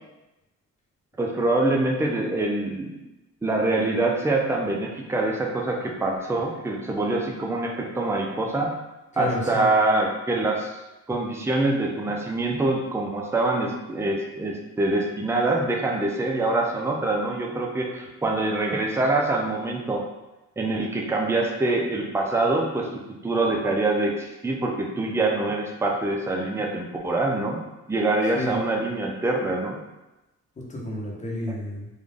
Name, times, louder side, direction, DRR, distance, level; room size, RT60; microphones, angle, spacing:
voice 1, 1.2-3.0 3.4-8.7 9.2-10.7 11.1-20.0 20.6-27.6 27.9-29.8, right 2 dB, 10° right, 0 dB, 0.5 m, -25 dB
voice 2, 9.1-9.6 12.5-12.6 28.3-28.6 30.6-31.9, left 1 dB, 25° left, -4 dB, 1.1 m, -31 dB
3.6 x 2.4 x 3.5 m, 1.0 s
cardioid pair, 90°, 30 cm